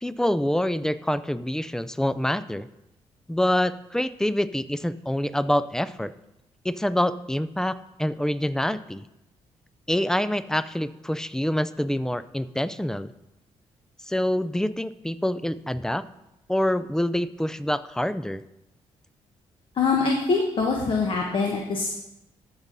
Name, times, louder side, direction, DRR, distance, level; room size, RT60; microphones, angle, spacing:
voice 1, 0.0-2.7 3.3-6.1 6.6-9.1 9.9-13.1 14.0-16.1 16.5-18.4, left 1 dB, 5° left, 14 dB, 0.4 m, -26 dB
voice 2, 19.7-21.9, left 4 dB, 50° left, 0 dB, 1.2 m, -24 dB
14.0 x 5.3 x 4.0 m, 0.90 s
cardioid pair, 95°, 11 cm